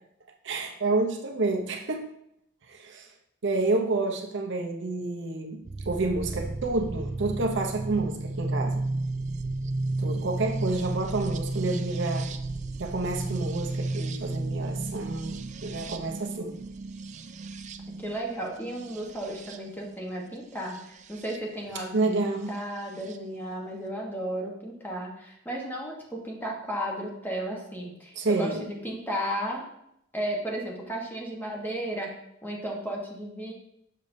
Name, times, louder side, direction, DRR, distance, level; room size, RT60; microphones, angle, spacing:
voice 1, 0.4-2.1 2.7-3.1 3.4-5.6 5.9-8.8 10.0-12.3 12.8-16.6 21.9-22.5 28.2-28.6, right 3 dB, 65° right, 3 dB, 0.7 m, -29 dB
sound 1, 5.6-21.4 22.5-23.2, right 2 dB, 35° right, 0.4 m, -33 dB
voice 2, 17.9-29.6 30.1-32.1 32.4-33.5, equal, 10° left, -2 dB, 1.2 m, -34 dB
6.7 x 6.4 x 2.7 m, 0.77 s
head